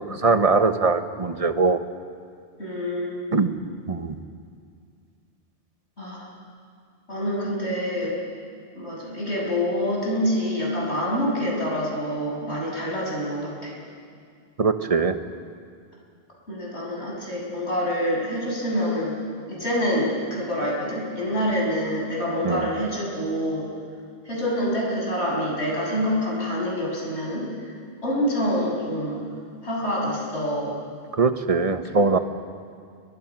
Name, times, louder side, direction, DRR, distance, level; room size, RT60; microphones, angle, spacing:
voice 1, 0.0-1.8 3.3-3.6 3.9-4.2 14.6-15.2 22.4-22.6 31.1-32.2, right 4 dB, 35° right, 9 dB, 1.1 m, -21 dB
voice 2, 2.6-3.2 6.0-6.3 7.1-8.2 8.7-13.8 16.5-19.1 19.5-23.7 24.2-27.7 28.0-29.3 29.6-30.8, equal, 90° left, -4 dB, 7.4 m, -26 dB
30.0 x 23.5 x 6.0 m, 2.2 s
omnidirectional pair, 1.1 m